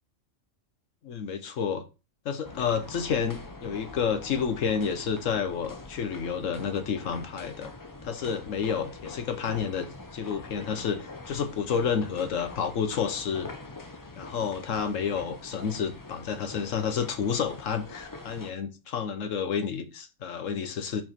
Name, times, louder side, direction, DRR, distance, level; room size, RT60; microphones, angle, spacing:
voice 1, 1.0-1.8 2.2-7.7 8.0-9.9 10.1-13.5 14.2-21.0, left 6 dB, 75° left, 1.3 m, -30 dB
sound 1, 2.4-18.5, left 2 dB, 20° left, 0.6 m, -44 dB
6.0 x 4.5 x 4.4 m
omnidirectional pair, 1.3 m